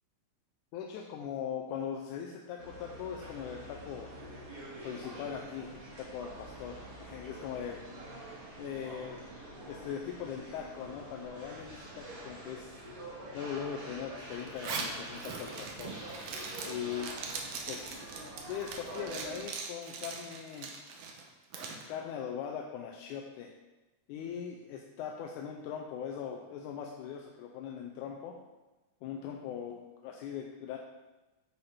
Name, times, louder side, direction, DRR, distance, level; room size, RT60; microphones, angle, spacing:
voice 1, 0.7-4.1 4.8-7.8 8.6-9.2 9.7-12.8 13.3-16.0 16.7-17.1 17.7-18.0 18.5-20.7 21.9-23.5 24.1-28.4 29.0-30.8, left 8 dB, 85° left, 1 dB, 2.0 m, -40 dB
sound 1, 2.6-19.5, right 1 dB, 50° right, 2.9 m, -46 dB
Zipper (clothing), 14.5-21.8, right 5 dB, 70° right, 1.6 m, -41 dB
9.8 x 4.1 x 4.2 m, 1.1 s
omnidirectional pair, 3.5 m